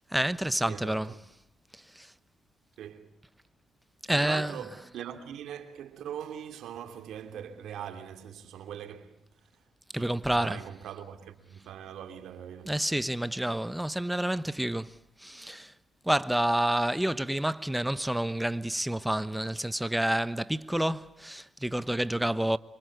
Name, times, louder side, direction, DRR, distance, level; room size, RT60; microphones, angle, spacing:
voice 1, 0.1-1.1 1.9-2.1 4.1-4.6 9.9-10.6 12.7-15.7 16.0-22.6, right 1 dB, 5° right, 1.0 m, -29 dB
voice 2, 0.6-1.2 2.8-3.1 4.1-9.5 9.9-12.8, right 9 dB, 85° right, 3.0 m, -42 dB
26.5 x 24.5 x 8.0 m
cardioid pair, 85°, 0 cm